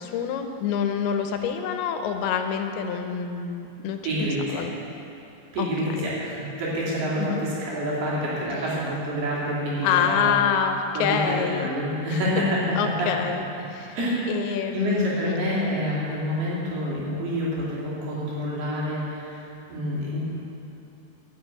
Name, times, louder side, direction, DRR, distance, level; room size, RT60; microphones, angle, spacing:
voice 1, 0.0-4.7 5.6-6.1 7.2-7.5 9.8-11.7 12.8-13.4 13.7-14.0 14.3-15.4, left 7 dB, 80° left, 6 dB, 2.7 m, -26 dB
voice 2, 4.0-4.6 5.5-10.3 10.9-12.7 13.0-13.1 13.9-14.3 14.7-19.4 19.7-20.2, equal, 80° right, -7 dB, 4.9 m, -27 dB
12.5 x 7.0 x 8.1 m, 2.9 s
omnidirectional pair, 4.5 m